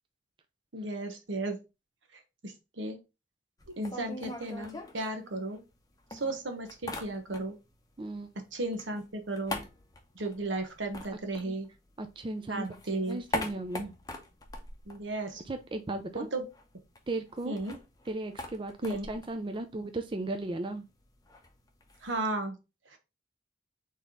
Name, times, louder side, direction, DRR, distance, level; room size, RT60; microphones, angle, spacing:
voice 1, 0.7-1.6 2.4-3.0 3.8-5.6 6.1-7.6 8.4-9.6 10.1-11.7 12.5-13.2 14.9-15.4 16.1-16.4 17.5-17.8 18.8-19.1 22.0-22.6 22.9-23.0, right 2 dB, 80° right, 5 dB, 1.1 m, -34 dB
sound 1, 3.6-5.8 6.1-7.7 8.0-12.2 12.5-15.8 16.0-16.1 16.4-22.2, left 2 dB, 20° left, 0.7 m, -42 dB
voice 2, 8.0-8.3 11.5-11.6 12.0-13.9 15.5-16.3 17.1-17.6 18.1-20.9, right 2 dB, 25° right, 7 dB, 0.4 m, -36 dB
4.2 x 3.4 x 3.7 m, 0.26 s
head